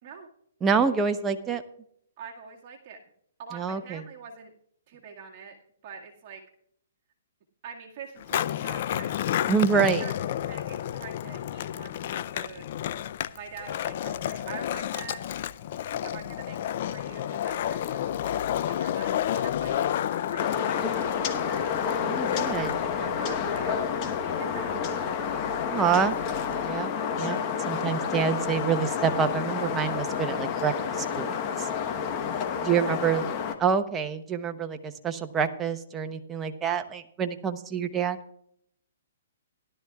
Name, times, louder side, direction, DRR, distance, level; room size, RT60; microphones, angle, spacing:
voice 1, 0.6-1.6 3.5-4.0 9.5-10.0 22.1-22.7 25.7-26.1 26.6-27.4 27.7-31.7 32.6-33.2 33.6-38.2, right 6 dB, 15° right, 7 dB, 0.8 m, -27 dB
voice 2, 2.2-3.0 3.4-4.5 4.9-5.6 5.8-6.4 7.6-9.1 9.7-10.1 10.5-12.6 13.3-15.2 16.0-18.3 18.7-21.8 22.3-25.1 31.9-32.4 32.8-33.3, right 6 dB, 40° right, -1 dB, 1.9 m, -44 dB
Skateboard, 8.2-26.8, left 11 dB, 50° left, 0.4 m, -31 dB
sound 1, 20.4-33.5, left 7 dB, 30° left, 1.0 m, -30 dB
16.5 x 11.5 x 2.4 m, 0.70 s
hypercardioid pair, 140°, 0 cm